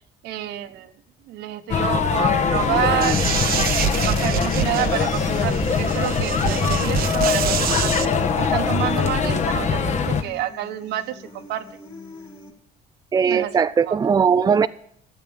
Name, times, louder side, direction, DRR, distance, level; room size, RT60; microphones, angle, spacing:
voice 1, 0.2-0.9 1.3-3.6 3.9-7.9 8.4-11.6 13.3-14.0, right 12 dB, 85° right, 1.3 m, -28 dB
sound 1, 1.7-10.2, left 6 dB, 45° left, 1.4 m, -22 dB
sound 2, 3.0-8.1, right 10 dB, 60° right, 0.8 m, -26 dB
Human voice, 4.5-12.5, left 2 dB, 25° left, 3.0 m, -42 dB
voice 2, 13.1-14.7, right 6 dB, 25° right, 0.5 m, -19 dB
12.5 x 7.8 x 8.8 m
cardioid pair, 110°, 17 cm